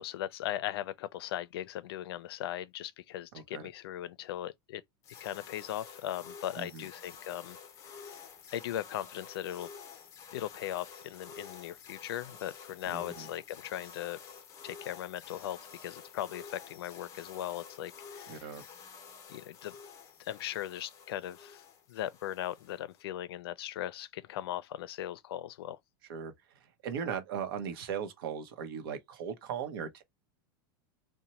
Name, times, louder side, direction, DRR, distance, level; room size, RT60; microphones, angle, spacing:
voice 1, 0.0-4.8 5.2-7.6 7.8-7.9 8.5-9.7 10.3-14.2 14.6-18.5 19.3-19.7 20.2-21.6 21.9-25.8, left 12 dB, 85° left, 0.4 m, -38 dB
voice 2, 3.3-3.7 6.5-6.9 12.9-13.3 18.3-18.6 26.1-26.3 26.8-30.0, right 7 dB, 75° right, 0.8 m, -38 dB
sound 1, 5.0-23.0, left 6 dB, 25° left, 0.7 m, -50 dB
2.9 x 2.1 x 4.1 m
supercardioid pair, 150°, 13 cm